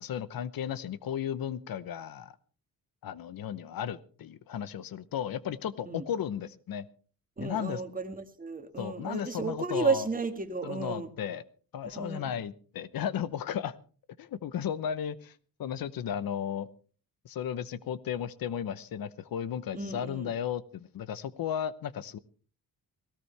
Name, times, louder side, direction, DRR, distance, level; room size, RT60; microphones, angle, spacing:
voice 1, 0.0-2.4 3.0-6.9 7.4-7.8 8.8-10.1 10.6-11.4 11.7-13.7 14.2-15.3 15.6-16.7 17.2-22.2, left 9 dB, 70° left, 16 dB, 0.9 m, -34 dB
voice 2, 7.4-11.1 11.8-12.3 19.7-20.3, right 4 dB, 25° right, 7 dB, 1.7 m, -33 dB
18.0 x 17.0 x 3.3 m, 0.40 s
cardioid pair, 135°, 36 cm